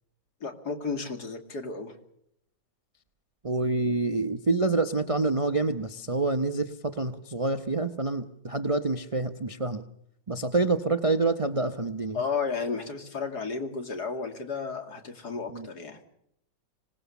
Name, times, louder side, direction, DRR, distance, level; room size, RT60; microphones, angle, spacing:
voice 1, 0.4-1.9 12.1-16.0, left 5 dB, 60° left, 5 dB, 3.1 m, -33 dB
voice 2, 3.4-9.9 10.3-12.2 15.5-15.7, right 3 dB, 35° right, 8 dB, 0.5 m, -27 dB
25.5 x 19.0 x 7.2 m, 0.74 s
omnidirectional pair, 1.9 m